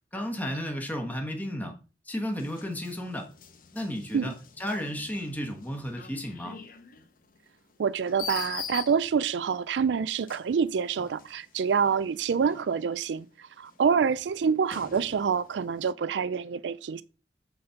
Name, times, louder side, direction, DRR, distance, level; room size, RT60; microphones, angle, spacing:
voice 1, 0.1-1.8 2.0-3.3 3.7-6.6, equal, 10° left, 1.3 m, -33 dB
sound 1, 2.3-9.5 10.1-13.2 13.6-15.7, left 7 dB, 55° left, 1.0 m, -44 dB
voice 2, 7.8-17.0, right 6 dB, 80° right, 0.4 m, -27 dB
8.7 x 4.1 x 5.7 m
head